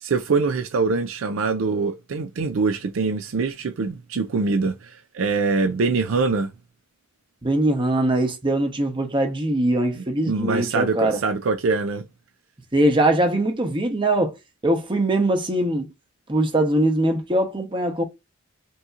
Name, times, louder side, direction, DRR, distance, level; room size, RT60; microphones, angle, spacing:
voice 1, 0.0-6.5 10.0-12.0, right 4 dB, 65° right, 0.4 m, -24 dB
voice 2, 7.4-11.2 12.7-14.4 14.6-15.9 16.3-18.0, right 1 dB, 25° right, 0.9 m, -21 dB
5.4 x 2.8 x 2.4 m
head